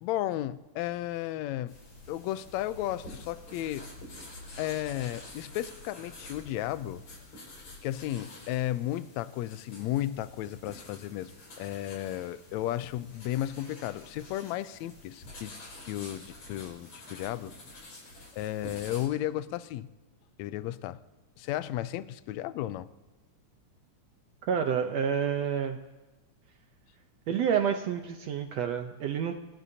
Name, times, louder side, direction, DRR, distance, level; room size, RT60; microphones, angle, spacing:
voice 1, 0.0-1.7 2.1-3.9 4.6-7.0 7.8-11.3 11.6-15.6 15.8-17.5 18.3-19.9 20.4-21.0 21.4-22.9, left 13 dB, 80° left, 14 dB, 1.7 m, -34 dB
sound 1, 1.7-19.1, left 1 dB, 60° left, 6.5 m, -48 dB
voice 2, 24.4-25.8 27.3-29.4, right 8 dB, 70° right, 6 dB, 1.7 m, -29 dB
28.0 x 17.0 x 2.8 m, 1.2 s
omnidirectional pair, 3.7 m